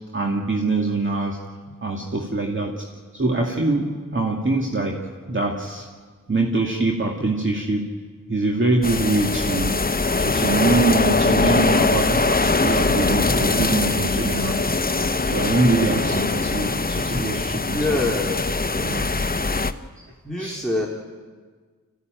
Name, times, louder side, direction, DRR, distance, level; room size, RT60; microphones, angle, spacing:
voice 1, 0.1-1.4 1.8-2.9 3.1-5.0 5.3-5.9 6.3-7.9 8.3-9.8 10.2-14.6 15.3-18.1 18.8-19.1 20.0-20.1 20.4-20.6, right 2 dB, 35° right, -1 dB, 2.5 m, -24 dB
sound 1, 8.8-19.7, left 3 dB, 25° left, 1.0 m, -22 dB
voice 2, 17.7-19.4 20.2-20.9, left 2 dB, ahead, -3 dB, 3.0 m, -27 dB
25.0 x 16.0 x 9.3 m, 1.5 s
cardioid pair, 50°, 33 cm